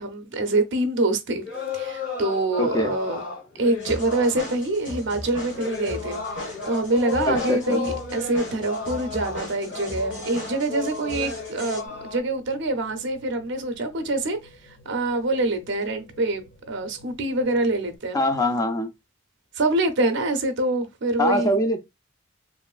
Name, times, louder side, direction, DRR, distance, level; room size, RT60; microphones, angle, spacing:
voice 1, 0.0-1.4 1.7-3.2 3.6-14.4 14.9-18.2 19.5-21.6, right 2 dB, 65° right, 0.6 m, -25 dB
sound 1, 1.4-4.5 5.4-12.2, left 5 dB, 80° left, 1.3 m, -33 dB
voice 2, 2.6-2.9 7.3-7.8 18.1-18.9 21.2-21.8, left 1 dB, 20° left, 0.4 m, -23 dB
sound 2, 3.6-18.0, left 1 dB, 50° left, 0.7 m, -51 dB
sound 3, 3.8-11.8, left 1 dB, 65° left, 1.5 m, -37 dB
3.0 x 2.5 x 2.3 m
head